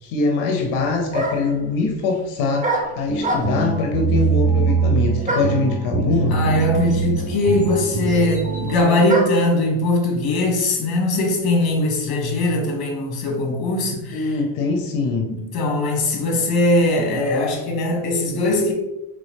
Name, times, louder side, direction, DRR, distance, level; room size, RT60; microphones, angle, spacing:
voice 1, 0.0-6.4 14.1-15.3, left 4 dB, 85° left, 2 dB, 0.7 m, -23 dB
sound 1, 0.6-0.7 1.1-1.6 2.6-3.8 5.3-5.7 6.6-6.7 6.9-9.5, right 1 dB, 15° right, 0.8 m, -25 dB
sound 2, 3.1-8.8, right 6 dB, 35° right, 0.4 m, -23 dB
voice 2, 6.3-14.3 15.3-18.7, left 2 dB, 50° left, 1 dB, 1.4 m, -20 dB
3.9 x 3.3 x 3.4 m, 0.98 s
cardioid pair, 130°, 47 cm